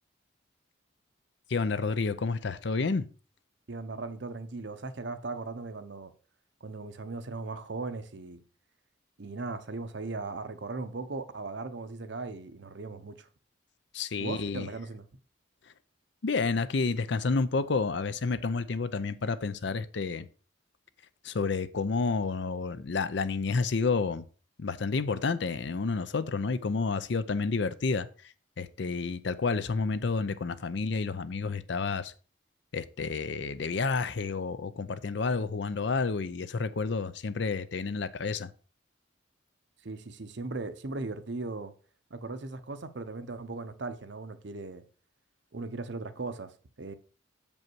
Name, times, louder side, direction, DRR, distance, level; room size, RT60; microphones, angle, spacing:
voice 1, 1.5-3.0 13.9-14.7 16.2-20.3 21.2-24.2 24.6-28.1 28.6-32.1 32.7-38.5, left 4 dB, 60° left, 0.5 m, -30 dB
voice 2, 3.7-6.1 6.6-8.4 9.2-13.3 14.2-15.0 39.8-41.7 42.1-44.8 45.5-46.5 46.8-46.9, right 3 dB, 60° right, 0.8 m, -38 dB
7.2 x 5.3 x 4.6 m
head